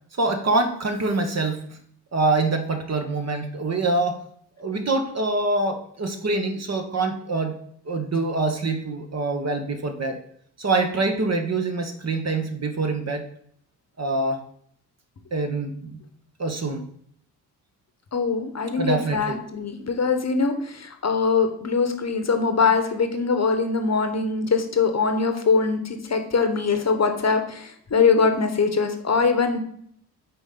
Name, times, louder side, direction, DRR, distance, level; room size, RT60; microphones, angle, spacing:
voice 1, 0.2-1.6 2.1-4.2 4.6-7.5 7.9-10.2 10.6-13.2 14.0-14.4 15.3-16.0 16.4-16.8 18.8-19.4, right 3 dB, 35° right, 5 dB, 1.0 m, -25 dB
voice 2, 18.1-29.6, left 5 dB, 35° left, 6 dB, 1.1 m, -22 dB
6.8 x 4.3 x 3.8 m, 0.65 s
hypercardioid pair, 40°, 45 cm